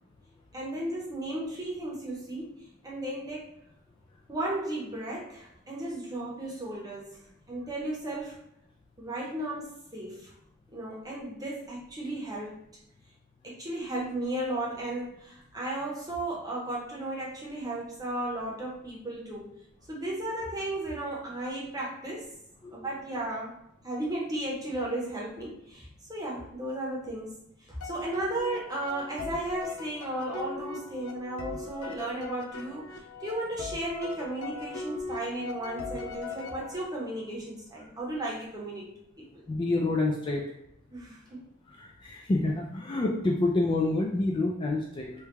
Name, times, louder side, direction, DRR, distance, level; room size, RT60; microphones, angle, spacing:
voice 1, 0.5-3.6 4.3-7.2 7.5-8.4 9.0-10.3 10.7-12.6 13.4-19.6 19.9-22.4 22.7-23.5 23.8-27.3 27.7-32.9 33.2-39.4 40.9-41.5, right 1 dB, 20° right, -4 dB, 0.8 m, -35 dB
sound 1, 27.8-37.1, left 4 dB, 80° left, 0.5 m, -40 dB
voice 2, 39.5-40.4 41.8-45.1, left 2 dB, 25° left, -1 dB, 0.3 m, -27 dB
3.3 x 2.2 x 3.1 m, 0.79 s
head